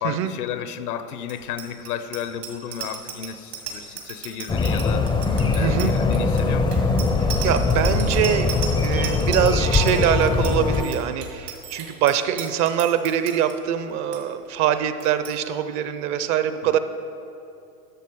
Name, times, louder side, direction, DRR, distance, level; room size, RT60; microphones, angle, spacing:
voice 1, 0.0-5.1 5.5-6.9 16.6-16.8, left 9 dB, 70° left, 12 dB, 0.8 m, -33 dB
Bicycle bell, 1.2-13.5 13.9-14.2 14.4-14.7 15.0-15.3, right 7 dB, 80° right, 2.2 m, -35 dB
sound 1, 4.5-10.9, left 3 dB, 10° left, 0.4 m, -21 dB
voice 2, 5.6-6.0 7.4-8.5 8.8-16.8, right 9 dB, 40° right, 11 dB, 0.5 m, -23 dB
12.5 x 6.7 x 4.7 m, 2.7 s
hypercardioid pair, 105°, 47 cm